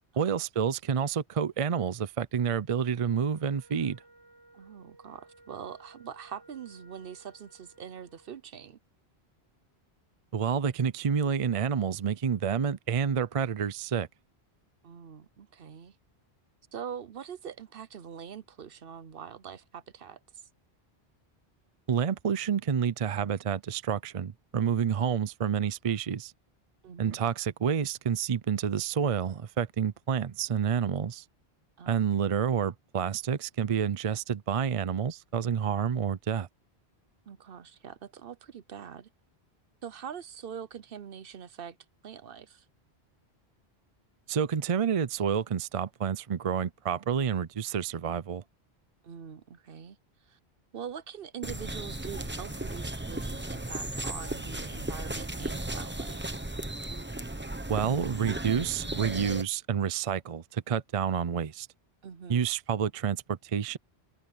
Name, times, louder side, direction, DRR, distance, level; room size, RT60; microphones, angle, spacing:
voice 1, 0.2-4.0 10.3-14.1 21.9-26.3 27.0-31.2 31.9-36.5 44.3-48.4 57.7-61.7 62.3-63.8, right 7 dB, 40° right, 0.5 m, -29 dB
Wind instrument woodwind instrument, 2.8-8.4, right 2 dB, 20° left, 7.1 m, -58 dB
voice 2, 4.5-8.8 14.8-16.0 16.7-20.5 26.8-27.2 31.8-32.0 37.3-39.1 39.8-41.8 42.0-42.6 49.0-50.0 50.2-50.4 50.7-56.3 62.0-62.4, right 8 dB, 60° right, 0.9 m, -43 dB
sound 1, 51.4-59.4, right 1 dB, 10° right, 1.0 m, -36 dB
omnidirectional pair, 1.1 m